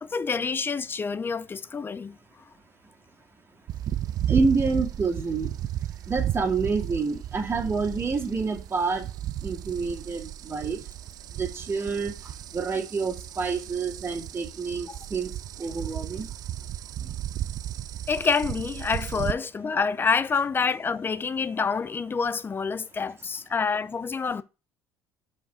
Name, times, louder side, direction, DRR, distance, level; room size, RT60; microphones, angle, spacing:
voice 1, 0.0-2.2 14.9-15.0 18.1-24.4, left 5 dB, 30° left, 0.5 m, -27 dB
sound 1, 3.7-19.3, right 11 dB, 55° right, 0.5 m, -34 dB
voice 2, 4.3-5.5 6.1-9.1 9.4-10.8 11.4-12.1 12.5-15.3 15.6-16.3, right 4 dB, 30° right, 2.1 m, -28 dB
5.1 x 5.0 x 5.5 m
supercardioid pair, 75°, 8 cm